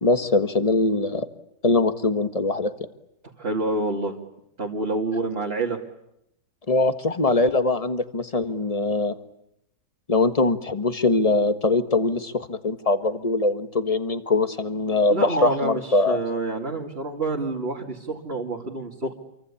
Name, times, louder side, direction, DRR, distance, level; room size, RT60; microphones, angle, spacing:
voice 1, 0.0-1.3 1.6-2.7 6.7-9.1 10.1-16.2, left 2 dB, 20° left, 10 dB, 1.5 m, -22 dB
voice 2, 3.4-4.1 4.6-5.8 15.1-19.1, right 2 dB, 35° right, -1 dB, 2.8 m, -27 dB
28.0 x 24.5 x 8.6 m, 0.82 s
omnidirectional pair, 1.9 m